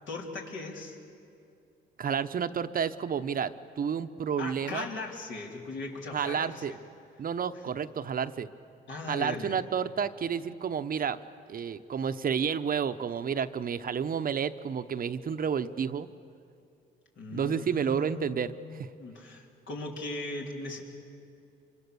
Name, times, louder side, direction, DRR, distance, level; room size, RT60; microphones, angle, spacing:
voice 1, 0.1-1.0 4.4-6.8 7.5-7.7 8.9-9.6 17.2-20.8, left 2 dB, 70° left, -1 dB, 3.9 m, -39 dB
voice 2, 2.0-4.9 6.1-6.7 7.2-8.5 9.1-11.2 11.5-16.1 17.3-18.9, right 7 dB, 45° right, 11 dB, 0.8 m, -30 dB
26.0 x 24.5 x 6.9 m, 2.5 s
cardioid pair, 90°, 20 cm